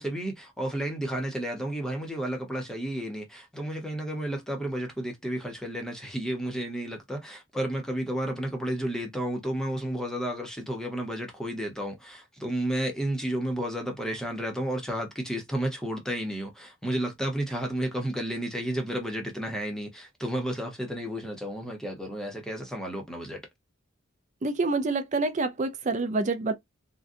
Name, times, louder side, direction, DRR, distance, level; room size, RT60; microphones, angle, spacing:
voice 1, 0.0-23.4, right 1 dB, 5° left, 0.8 m, -32 dB
voice 2, 24.4-26.5, right 3 dB, 35° right, 0.4 m, -27 dB
3.8 x 2.2 x 2.5 m
head